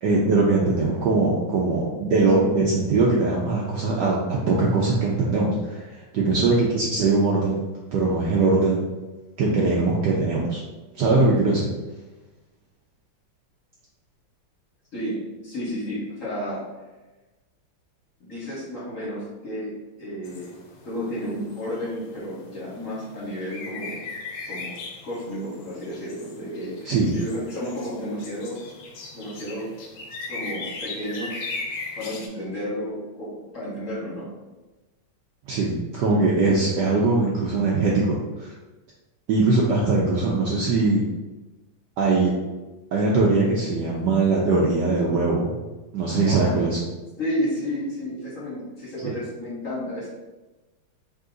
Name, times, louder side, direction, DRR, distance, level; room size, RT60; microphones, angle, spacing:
voice 1, 0.0-7.6 7.9-8.9 9.4-10.6 10.9-11.7 26.9-27.1 35.5-38.5 39.3-41.0 42.0-42.3 42.9-45.6 45.9-46.8 49.0-49.1, right 3 dB, 70° right, -3 dB, 1.0 m, -21 dB
voice 2, 14.9-16.7 18.2-20.6 20.8-24.0 24.5-28.6 29.1-29.7 30.3-31.4 31.9-34.3 46.2-46.6 47.2-50.1, equal, 45° left, -7 dB, 1.4 m, -32 dB
sound 1, 20.2-32.3, left 3 dB, 70° left, 1.2 m, -38 dB
3.7 x 2.8 x 3.8 m, 1.1 s
omnidirectional pair, 2.3 m